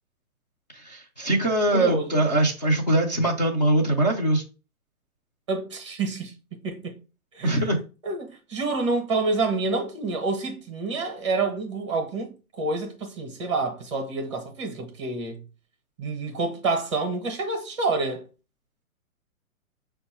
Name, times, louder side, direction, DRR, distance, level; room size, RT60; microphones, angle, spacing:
voice 1, 0.7-4.4 7.4-7.8, right 1 dB, 30° left, 0.5 m, -22 dB
voice 2, 1.7-2.2 5.5-6.9 7.3-7.6 8.0-15.4 16.0-18.2, right 3 dB, 20° right, 0.6 m, -28 dB
5.2 x 2.3 x 4.2 m
hypercardioid pair, 175°, 43 cm